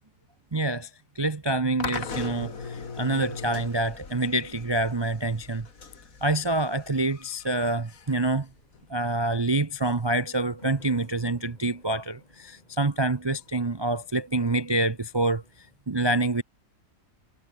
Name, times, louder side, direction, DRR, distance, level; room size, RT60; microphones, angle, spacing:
voice 1, 0.5-0.9 1.1-5.7 6.2-8.5 8.9-15.4 15.9-16.4, right 2 dB, 35° right, 0.4 m, -26 dB
sound 1, 1.8-8.9, left 5 dB, 60° left, 2.6 m, -39 dB
sound 2, 8.3-15.7, left 2 dB, 25° left, 2.7 m, -55 dB
omnidirectional pair, 1.7 m